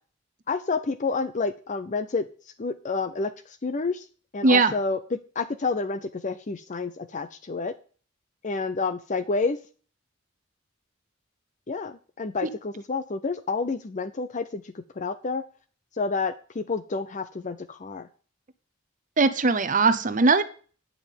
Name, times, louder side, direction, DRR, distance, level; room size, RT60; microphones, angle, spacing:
voice 1, 0.5-2.3 2.6-4.1 4.3-7.7 8.4-9.6 11.7-15.4 16.0-18.1, left 4 dB, 40° left, 0.5 m, -29 dB
voice 2, 19.2-20.4, right 3 dB, 40° right, 0.8 m, -20 dB
9.2 x 5.8 x 8.3 m
head